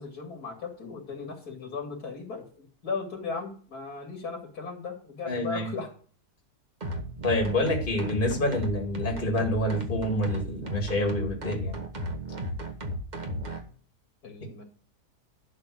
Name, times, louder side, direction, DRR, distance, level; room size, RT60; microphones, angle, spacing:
voice 1, 0.0-5.9 14.2-14.6, left 4 dB, 65° left, 1 dB, 2.9 m, -37 dB
voice 2, 5.3-5.7 7.2-11.8, left 1 dB, 30° left, 1 dB, 2.3 m, -27 dB
sound 1, 6.8-13.6, equal, 30° right, 1.2 m, -34 dB
12.0 x 4.0 x 7.9 m, 0.42 s
omnidirectional pair, 1.8 m